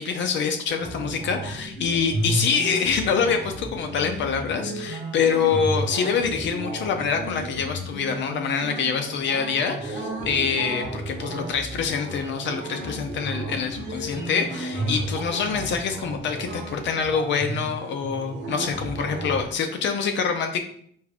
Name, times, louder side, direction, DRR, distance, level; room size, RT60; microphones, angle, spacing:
voice 1, 0.0-20.6, left 6 dB, 65° left, 5 dB, 0.5 m, -25 dB
sound 1, 0.7-19.5, right 1 dB, 65° right, 1.1 m, -33 dB
3.5 x 2.6 x 3.4 m, 0.62 s
cardioid pair, 90°, 20 cm